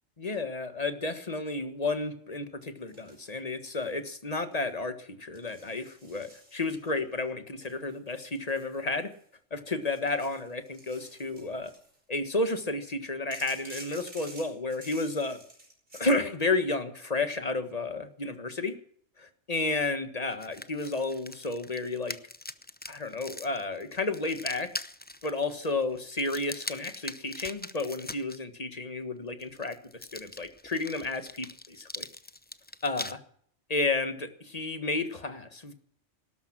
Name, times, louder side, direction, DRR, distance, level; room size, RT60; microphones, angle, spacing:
voice 1, 0.2-9.1 9.5-11.7 12.1-15.4 15.9-18.8 19.2-22.2 22.9-24.7 25.2-29.8 30.1-32.1 32.8-33.2 33.7-35.7, left 3 dB, 30° left, 9 dB, 1.7 m, -32 dB
sound 1, 2.9-4.0 4.3-4.7 5.3-7.0 7.6-9.3 9.8-12.0 13.3-16.1, right 1 dB, 45° right, 5.5 m, -51 dB
sound 2, 20.3-28.4 29.4-33.1, left 2 dB, 10° left, 0.6 m, -42 dB
17.0 x 13.0 x 6.1 m, 0.62 s
omnidirectional pair, 1.3 m